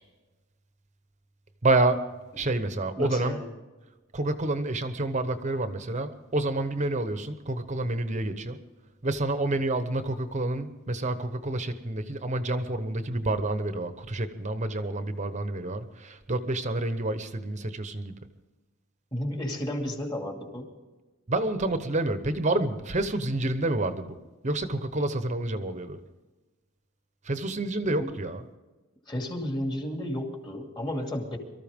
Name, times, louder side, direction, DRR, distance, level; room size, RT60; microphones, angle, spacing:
voice 1, 1.6-2.0 2.4-3.4 4.1-8.6 9.0-18.1 21.3-24.1 24.4-26.0 27.2-28.4, right 2 dB, 35° right, 10 dB, 1.0 m, -28 dB
voice 2, 3.0-3.5 19.1-20.7 27.8-28.1 29.1-31.4, left 1 dB, 20° left, 2 dB, 2.5 m, -32 dB
23.5 x 14.0 x 3.6 m, 1.2 s
head